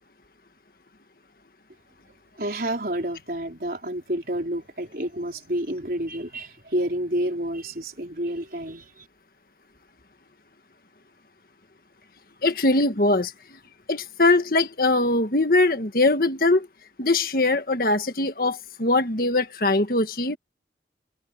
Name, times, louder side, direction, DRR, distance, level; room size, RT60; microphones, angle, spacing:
voice 1, 2.4-9.1, right 1 dB, 55° right, 4.5 m, -29 dB
voice 2, 12.4-13.3 13.9-16.7 17.0-20.4, left 2 dB, 55° left, 1.7 m, -21 dB
head